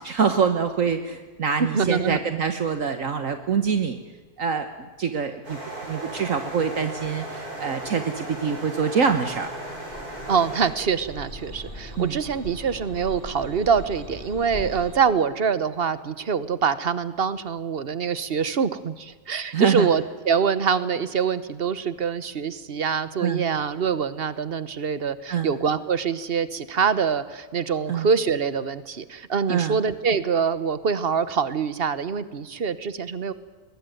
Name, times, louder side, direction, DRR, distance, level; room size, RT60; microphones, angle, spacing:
voice 1, 0.0-4.0 4.4-4.7 5.0-9.5 12.0-12.2 19.5-19.9 23.2-23.5 25.3-25.5 27.9-28.1 29.5-29.8, right 6 dB, 60° right, 8 dB, 1.6 m, -25 dB
voice 2, 1.6-2.2 10.3-33.3, right 6 dB, 45° right, 14 dB, 1.2 m, -25 dB
sound 1, 5.4-10.7, right 1 dB, 90° right, 8.0 m, -36 dB
sound 2, 9.4-15.0, left 1 dB, 35° left, 5.8 m, -40 dB
22.0 x 20.0 x 9.3 m, 1.4 s
omnidirectional pair, 1.6 m